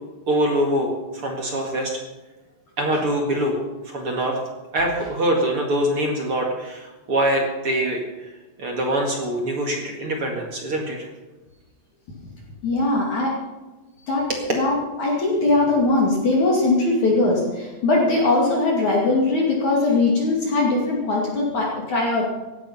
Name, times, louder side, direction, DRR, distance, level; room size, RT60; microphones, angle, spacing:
voice 1, 0.3-1.9 2.8-3.6 3.8-4.4 4.7-8.3 8.6-11.1 14.3-14.4, right 1 dB, 45° right, 0 dB, 2.0 m, -24 dB
voice 2, 12.6-13.3 14.1-14.3 14.6-22.3, left 2 dB, 45° left, -2 dB, 3.4 m, -20 dB
17.0 x 11.5 x 5.6 m, 1.1 s
omnidirectional pair, 5.2 m